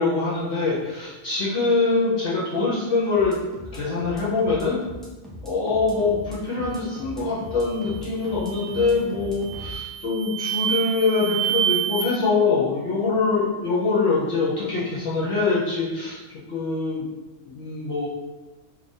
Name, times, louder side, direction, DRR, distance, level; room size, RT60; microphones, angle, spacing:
voice 1, 0.0-3.3 3.7-4.8 5.4-16.2 16.5-17.0 17.4-18.1, left 4 dB, 65° left, -8 dB, 1.1 m, -24 dB
sound 1, 3.2-9.7, left 1 dB, ahead, 0.3 m, -39 dB
sound 2, 7.6-7.9 8.4-8.9 9.4-12.1, right 10 dB, 70° right, 0.9 m, -28 dB
2.9 x 2.6 x 3.7 m, 1.1 s
omnidirectional pair, 1.4 m